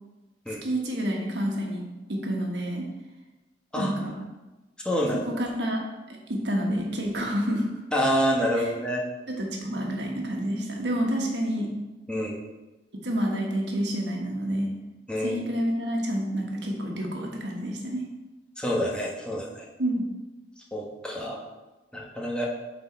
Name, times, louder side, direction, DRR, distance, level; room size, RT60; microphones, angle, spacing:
voice 1, 0.6-2.9 3.8-4.1 5.4-5.8 6.1-7.7 8.6-8.7 9.4-11.7 13.0-14.7 15.2-18.0 19.8-20.1, equal, 80° right, 0 dB, 1.4 m, -28 dB
voice 2, 4.8-5.3 7.9-9.0 12.1-12.4 15.1-15.4 18.6-19.7 20.7-21.4 21.9-22.5, equal, 5° left, -3 dB, 1.1 m, -27 dB
7.7 x 4.1 x 4.4 m, 1.1 s
head